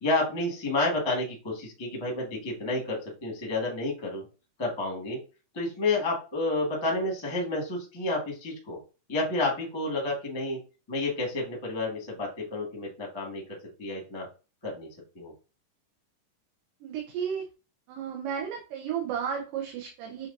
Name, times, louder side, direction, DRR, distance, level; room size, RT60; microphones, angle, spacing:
voice 1, 0.0-4.2 4.6-5.2 5.5-8.8 9.1-10.6 10.9-13.4 13.8-14.3 14.6-14.9 15.1-15.3, left 2 dB, 40° left, -2 dB, 0.4 m, -30 dB
voice 2, 16.8-17.4 17.9-20.3, right 8 dB, 85° right, 0 dB, 2.4 m, -33 dB
7.7 x 2.6 x 2.6 m, 0.32 s
omnidirectional pair, 3.8 m